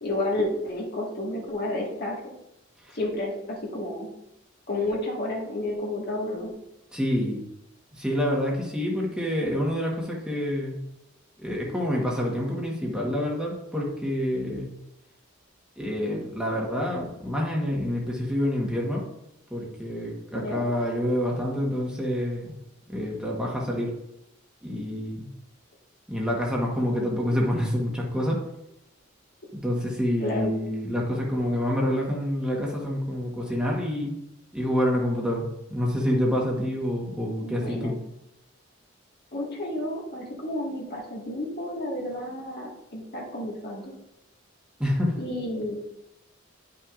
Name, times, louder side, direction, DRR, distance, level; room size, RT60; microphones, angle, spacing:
voice 1, 0.0-2.2 2.9-4.1 4.7-6.5 19.9-20.1 20.4-20.6 30.2-30.5 37.4-38.0 39.3-43.8 45.2-45.8, left 1 dB, 50° left, -2 dB, 1.8 m, -31 dB
voice 2, 6.9-7.4 7.9-10.8 11.4-14.7 15.8-19.0 19.5-22.6 22.9-23.9 24.6-25.3 26.1-28.4 29.5-34.2 34.5-37.9 44.8-45.1, equal, 5° right, -3 dB, 1.2 m, -27 dB
10.5 x 5.7 x 2.5 m, 0.87 s
head